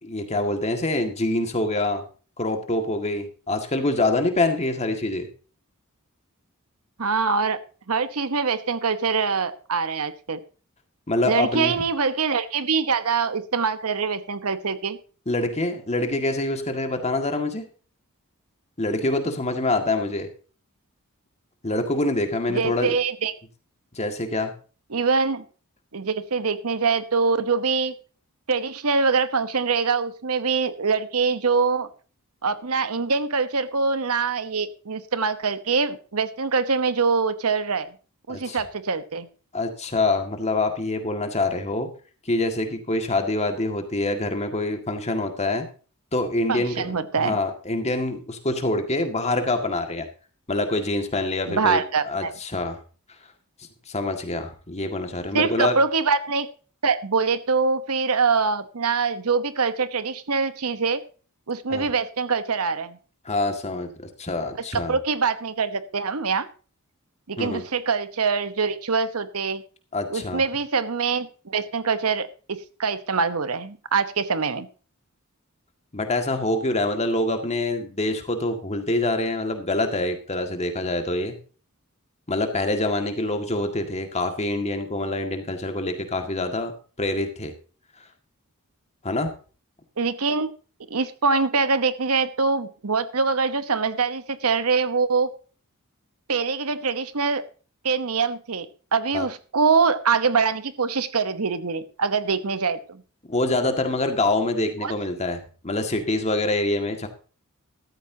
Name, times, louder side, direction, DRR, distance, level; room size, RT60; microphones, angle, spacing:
voice 1, 0.0-2.0 2.4-5.3 11.1-11.8 15.3-17.6 18.8-20.3 21.6-22.9 23.9-24.5 38.3-38.6 39.5-41.9 42.3-45.7 46.1-46.9 47.2-50.1 50.5-52.8 53.9-55.8 61.7-61.9 63.3-63.9 64.2-65.0 67.4-67.6 69.9-70.4 75.9-81.4 82.3-86.7 87.0-87.5 89.0-89.3 99.1-99.3 103.3-107.1, left 2 dB, 30° left, 5 dB, 2.0 m, -25 dB
voice 2, 7.0-7.6 7.9-10.4 11.2-15.0 22.5-23.3 24.9-25.4 25.9-27.9 28.5-31.9 32.4-37.9 38.3-39.3 46.5-47.4 51.5-52.3 55.3-56.5 56.8-61.0 61.5-63.0 64.7-66.5 67.3-69.6 70.1-74.7 90.0-90.5 90.9-95.3 96.3-97.4 97.8-103.0 104.8-104.9, right 5 dB, 80° right, 12 dB, 1.0 m, -24 dB
14.5 x 13.5 x 2.8 m, 0.37 s
head